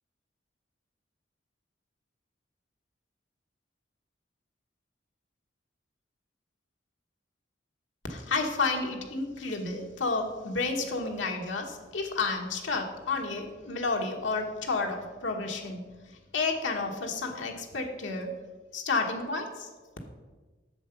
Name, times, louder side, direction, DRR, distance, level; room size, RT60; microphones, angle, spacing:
voice 1, 8.1-18.3 18.7-19.7, left 3 dB, 80° left, 2 dB, 1.4 m, -31 dB
7.8 x 6.8 x 5.8 m, 1.3 s
head